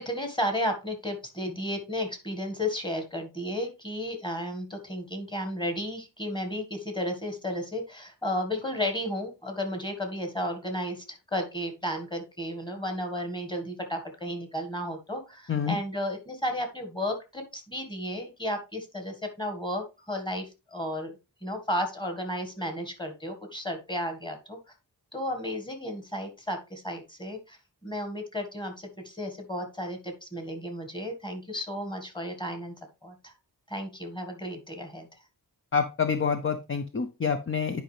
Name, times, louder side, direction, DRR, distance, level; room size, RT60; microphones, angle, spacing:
voice 1, 0.0-21.1 21.4-24.6 25.1-32.7 33.0-33.3 33.7-35.1, equal, 10° left, 5 dB, 1.7 m, -33 dB
voice 2, 35.7-37.8, left 6 dB, 30° left, 8 dB, 0.6 m, -27 dB
10.0 x 5.1 x 3.3 m, 0.28 s
wide cardioid pair, 155°, 39 cm